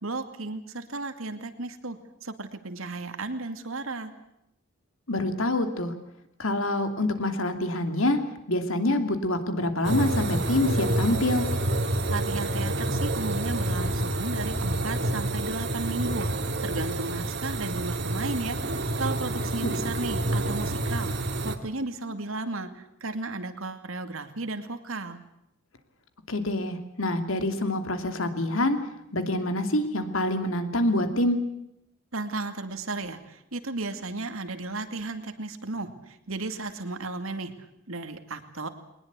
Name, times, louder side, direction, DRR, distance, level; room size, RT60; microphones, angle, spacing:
voice 1, 0.0-4.1 12.1-21.1 21.4-25.2 32.1-37.5 37.9-38.7, right 2 dB, 75° right, 8 dB, 2.4 m, -34 dB
voice 2, 5.1-5.9 6.4-8.2 8.5-11.5 19.6-19.7 26.3-28.8 29.1-31.4, left 1 dB, 75° left, 8 dB, 2.8 m, -26 dB
sound 1, 9.8-21.6, right 1 dB, 50° right, 2.2 m, -28 dB
22.0 x 20.0 x 8.3 m, 0.82 s
head